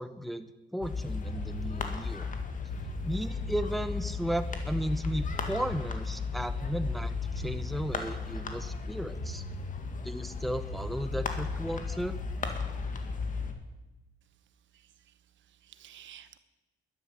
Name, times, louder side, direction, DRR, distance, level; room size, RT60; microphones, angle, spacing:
voice 1, 0.0-2.3 3.0-9.4 10.0-12.2, equal, ahead, 10 dB, 0.8 m, -35 dB
sound 1, 0.8-13.5, left 4 dB, 40° left, 2.0 m, -35 dB
voice 2, 14.7-15.1 15.5-16.4, right 10 dB, 65° right, 12 dB, 1.1 m, -53 dB
12.0 x 11.0 x 7.4 m, 1.1 s
cardioid pair, 110°, 20 cm